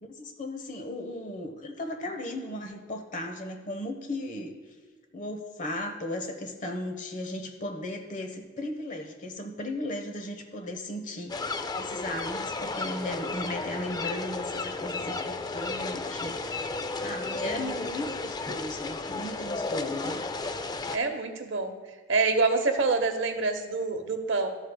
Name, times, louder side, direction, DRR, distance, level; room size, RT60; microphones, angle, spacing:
voice 1, 0.0-4.6 5.1-11.5 11.8-16.7 17.0-20.2, left 1 dB, 45° left, 5 dB, 1.0 m, -36 dB
sound 1, 11.3-21.0, left 3 dB, 20° left, 0.4 m, -33 dB
voice 2, 17.4-17.9 20.9-21.7 22.1-24.5, right 3 dB, 85° right, 7 dB, 0.9 m, -27 dB
13.0 x 7.9 x 2.2 m, 1.4 s
head